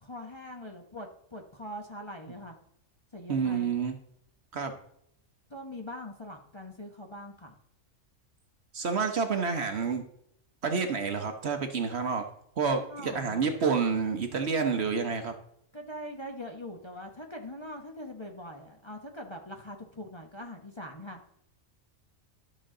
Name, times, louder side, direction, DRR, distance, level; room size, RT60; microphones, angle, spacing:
voice 1, 0.0-2.6 3.1-3.7 5.5-7.5 12.7-13.5 15.7-21.4, left 1 dB, 25° left, 2 dB, 1.0 m, -42 dB
voice 2, 3.3-4.0 4.5-4.7 8.7-10.0 10.6-12.3 12.6-15.3, right 5 dB, 55° right, 6 dB, 1.2 m, -29 dB
12.0 x 6.3 x 3.8 m, 0.70 s
omnidirectional pair, 1.4 m